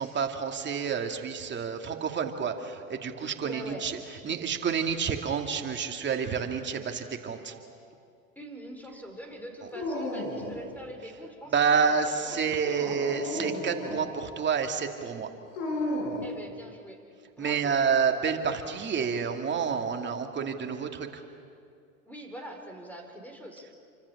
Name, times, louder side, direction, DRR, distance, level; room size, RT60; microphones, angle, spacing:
voice 1, 0.0-4.0 4.2-7.5 11.5-15.3 17.4-21.2, right 6 dB, 25° right, 4 dB, 2.6 m, -29 dB
voice 2, 3.4-3.9 8.3-13.0 16.2-17.0 17.4-17.7 22.0-23.6, right 1 dB, 5° left, 4 dB, 4.8 m, -43 dB
Dog, 9.7-10.7 12.6-14.1 15.5-16.3, left 1 dB, 55° left, 7.9 m, -33 dB
29.0 x 25.0 x 7.3 m, 2.4 s
hypercardioid pair, 95°, 42 cm